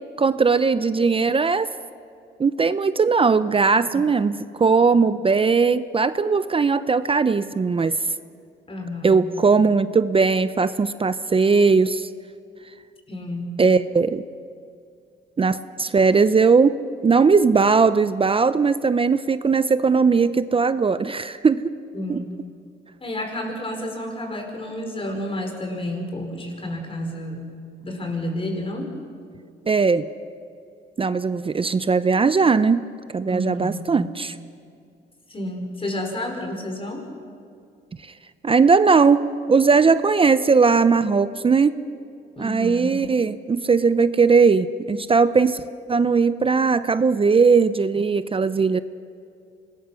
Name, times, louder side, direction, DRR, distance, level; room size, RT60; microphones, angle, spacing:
voice 1, 0.2-1.7 2.4-8.0 9.0-12.1 13.6-14.2 15.4-21.6 22.1-22.2 29.7-30.1 31.0-32.8 33.1-34.4 38.4-39.2 39.5-41.8 42.4-45.6 45.9-48.8, right 5 dB, 25° right, 13 dB, 0.6 m, -19 dB
voice 2, 8.7-9.3 13.1-13.5 21.9-22.3 23.0-27.4 27.8-28.9 33.3-33.9 35.3-37.0 42.4-43.0, left 1 dB, 25° left, 3 dB, 4.8 m, -30 dB
25.5 x 20.0 x 6.3 m, 2.4 s
cardioid pair, 90°, 20 cm